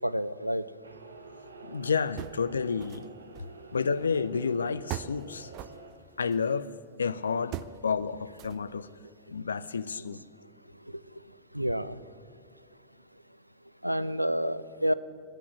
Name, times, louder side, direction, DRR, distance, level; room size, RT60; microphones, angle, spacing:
voice 1, 0.0-0.6 11.5-12.0 13.8-14.9, equal, 90° right, 0.4 m, -28 dB
sound 1, 0.8-5.9, right 3 dB, 75° right, 1.0 m, -48 dB
voice 2, 1.6-3.1 3.7-5.5 6.2-6.7 7.0-7.6 7.8-8.9 9.3-10.2, left 5 dB, 75° left, 0.5 m, -30 dB
sound 2, 2.2-3.1 3.3-4.4 4.9-6.5 7.5-7.8 8.3-8.9, right 13 dB, 40° right, 0.5 m, -40 dB
21.5 x 8.5 x 7.9 m
figure-of-eight pair, 90°, 0 cm